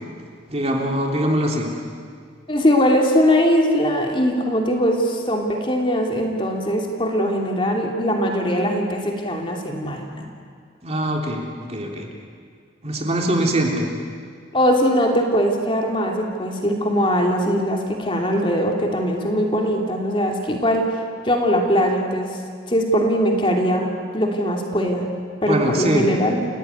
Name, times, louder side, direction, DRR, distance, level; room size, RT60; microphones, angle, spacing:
voice 1, 0.5-1.7 10.8-11.4 11.7-12.1 12.8-13.9 25.5-26.1, right 1 dB, 35° right, 1 dB, 3.3 m, -22 dB
voice 2, 2.5-10.3 14.5-20.8 21.2-22.4 22.7-23.9 24.1-25.1 25.4-26.5, equal, 25° left, 1 dB, 2.8 m, -21 dB
29.5 x 17.5 x 9.5 m, 2.1 s
head